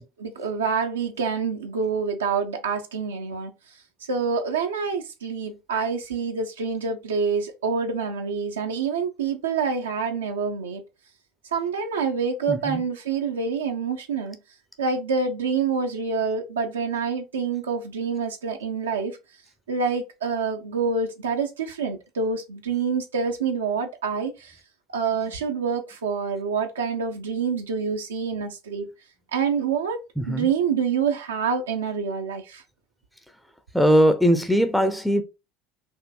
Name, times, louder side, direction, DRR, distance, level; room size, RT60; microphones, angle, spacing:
voice 1, 0.0-3.5 4.1-10.8 11.5-14.4 14.8-19.2 19.7-24.5 24.9-28.9 29.3-30.0 30.3-32.6, right 5 dB, 75° right, 0.4 m, -27 dB
voice 2, 12.5-12.8 30.2-30.5 33.7-35.2, equal, ahead, 0.5 m, -20 dB
4.3 x 2.6 x 2.3 m
figure-of-eight pair, 70°, 0 cm